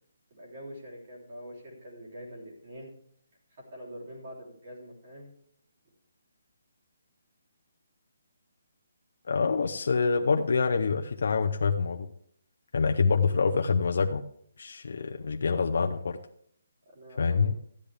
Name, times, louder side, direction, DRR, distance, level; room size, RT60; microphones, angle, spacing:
voice 1, 0.3-2.9 3.5-5.3 16.9-17.5, equal, 35° right, -3 dB, 3.5 m, -45 dB
voice 2, 9.3-12.1 12.7-14.2 14.6-16.2 17.2-17.5, left 5 dB, 55° left, 3 dB, 0.7 m, -26 dB
13.5 x 10.0 x 3.4 m, 0.65 s
hypercardioid pair, 175°, 0 cm